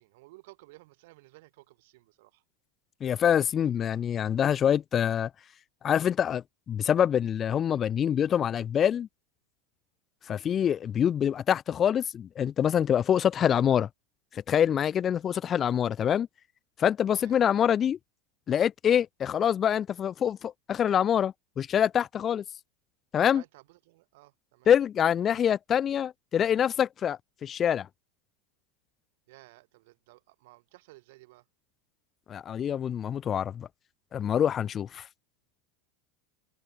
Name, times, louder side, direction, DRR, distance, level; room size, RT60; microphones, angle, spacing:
voice 1, 0.0-2.4 17.1-17.4 23.3-24.7 29.3-31.5, right 21 dB, 65° right, 7.9 m, -55 dB
voice 2, 3.0-5.3 5.8-9.1 10.3-13.9 14.3-16.3 16.8-18.0 18.5-22.4 23.1-23.4 24.7-27.9 32.3-33.7 34.1-35.1, left 9 dB, 25° left, 0.6 m, -25 dB
supercardioid pair, 150°, 0 cm